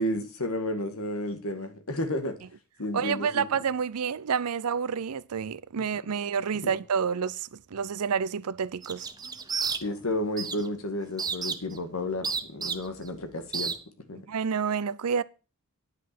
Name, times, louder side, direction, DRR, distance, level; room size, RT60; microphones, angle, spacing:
voice 1, 0.0-2.4 2.8-3.5 5.8-5.9 6.6-6.7 9.8-13.8 14.1-14.2, left 1 dB, 70° left, 1.9 m, -32 dB
voice 2, 2.9-9.1 14.3-15.2, right 6 dB, 85° right, 0.5 m, -29 dB
sound 1, 8.8-10.1 10.4-10.7 11.2-11.8 12.2-13.1 13.5-13.8, right 5 dB, 15° right, 0.7 m, -31 dB
9.9 x 5.6 x 7.5 m
head